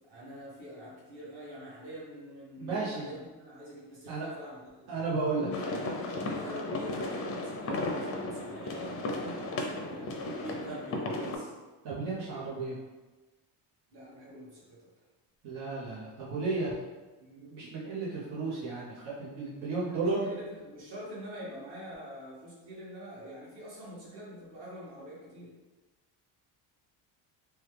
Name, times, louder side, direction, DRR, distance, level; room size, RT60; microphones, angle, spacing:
voice 1, 0.1-5.0 5.3-11.5 13.9-14.8 19.9-25.5, equal, 55° right, -7 dB, 1.5 m, -45 dB
voice 2, 2.6-3.1 4.1-4.3 4.9-5.5 11.8-12.8 15.4-16.7 17.2-20.3, right 3 dB, 90° right, -7 dB, 1.0 m, -33 dB
sound 1, 5.5-11.4, left 2 dB, 30° left, 0.4 m, -35 dB
3.1 x 2.3 x 3.3 m, 1.2 s
cardioid pair, 120°, 48 cm